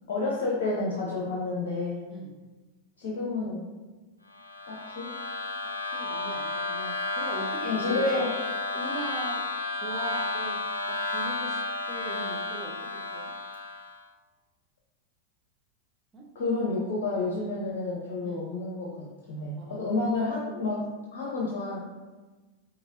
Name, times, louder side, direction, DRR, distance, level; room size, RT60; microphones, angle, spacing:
voice 1, 0.1-2.0 3.0-3.6 4.7-5.1 7.6-8.3 16.3-18.9 19.3-20.8 21.1-21.8, left 3 dB, 50° left, -4 dB, 0.8 m, -30 dB
sound 1, 4.3-14.0, left 3 dB, 85° left, 0.4 m, -32 dB
voice 2, 5.6-8.2 8.7-9.5 9.8-13.3 16.1-16.3 18.2-18.4 19.6-19.9, right 2 dB, 25° right, -1 dB, 0.6 m, -40 dB
5.2 x 2.9 x 2.5 m, 1.2 s
figure-of-eight pair, 90°, 0 cm